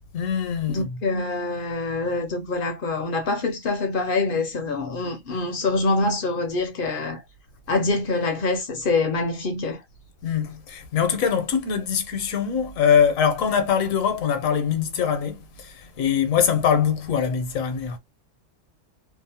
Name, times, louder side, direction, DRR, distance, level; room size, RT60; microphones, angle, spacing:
voice 1, 0.1-1.0 10.2-18.0, left 7 dB, 80° left, 1.1 m, -23 dB
voice 2, 0.7-7.2 7.7-9.8, left 3 dB, 60° left, 0.5 m, -25 dB
2.7 x 2.0 x 2.7 m
omnidirectional pair, 1.4 m